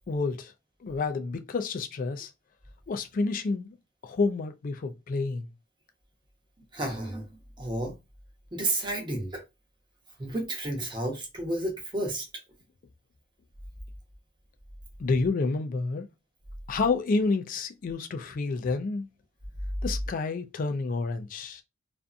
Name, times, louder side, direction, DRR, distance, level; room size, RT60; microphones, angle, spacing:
voice 1, 0.1-0.5 0.8-2.3 2.9-3.7 4.0-5.5 15.0-16.1 16.7-19.1 19.8-21.6, left 3 dB, 40° left, 0.3 m, -29 dB
voice 2, 6.7-7.9 8.5-9.4 10.2-12.3, right 1 dB, 20° right, 0.7 m, -31 dB
2.5 x 2.5 x 2.2 m
head